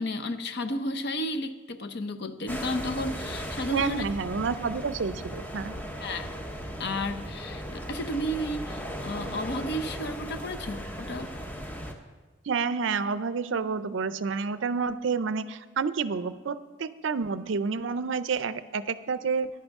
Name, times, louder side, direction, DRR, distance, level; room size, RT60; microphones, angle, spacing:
voice 1, 0.0-4.0 6.0-6.3 6.8-11.3, left 1 dB, 55° left, 9 dB, 0.7 m, -32 dB
sound 1, 2.5-11.9, equal, 10° left, 0.7 m, -37 dB
voice 2, 3.7-5.7 12.5-19.5, right 5 dB, 65° right, 14 dB, 0.5 m, -29 dB
14.0 x 10.5 x 3.6 m, 1.3 s
head